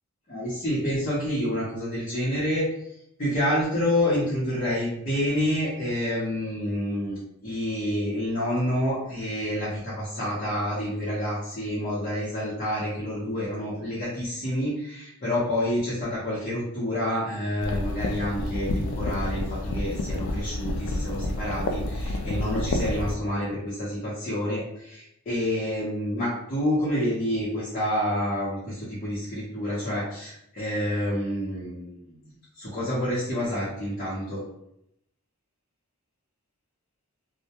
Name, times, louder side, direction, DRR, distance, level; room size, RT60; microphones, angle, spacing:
voice 1, 0.3-2.7 3.2-32.1 32.6-34.4, equal, 35° left, -9 dB, 0.7 m, -28 dB
sound 1, 17.6-23.1, left 2 dB, 80° left, 0.3 m, -29 dB
2.1 x 2.0 x 2.8 m, 0.77 s
head